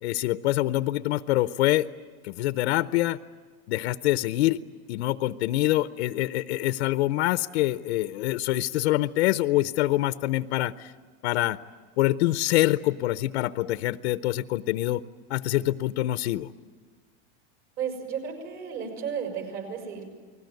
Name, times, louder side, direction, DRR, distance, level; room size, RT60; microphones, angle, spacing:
voice 1, 0.0-1.9 2.2-3.2 3.7-4.6 4.9-10.9 11.2-11.6 12.0-15.0 15.3-16.5, left 16 dB, 85° left, 13 dB, 0.8 m, -25 dB
voice 2, 17.8-20.0, right 7 dB, 45° right, 4 dB, 6.3 m, -33 dB
29.5 x 20.0 x 9.3 m, 1.5 s
supercardioid pair, 170°, 32 cm